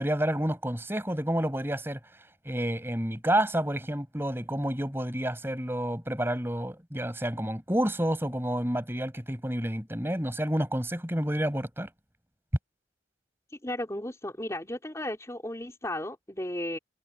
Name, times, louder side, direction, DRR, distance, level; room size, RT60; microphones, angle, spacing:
voice 1, 0.0-2.0 2.4-11.9, right 1 dB, 15° right, 6.5 m, -29 dB
voice 2, 13.6-16.8, left 1 dB, 15° left, 3.5 m, -35 dB
head